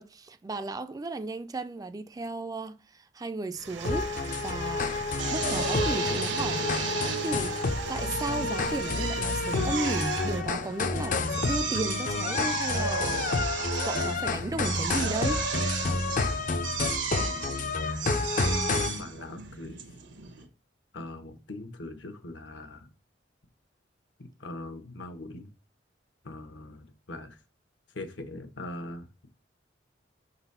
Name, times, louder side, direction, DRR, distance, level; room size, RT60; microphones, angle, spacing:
voice 1, 0.0-5.0 5.3-6.9 7.2-7.6 7.9-13.4 13.9-15.4, right 3 dB, 20° right, 0.3 m, -35 dB
sound 1, 3.5-10.4, right 5 dB, 70° right, 0.8 m, -41 dB
sound 2, 3.8-19.0, left 3 dB, 45° left, 0.5 m, -30 dB
Drill, 5.2-20.5, right 5 dB, 85° right, 1.1 m, -34 dB
voice 2, 17.2-17.7 18.6-19.8 20.9-22.9 24.2-25.5 26.2-27.4 27.9-29.3, left 2 dB, 75° left, 1.1 m, -42 dB
6.1 x 4.0 x 5.5 m
head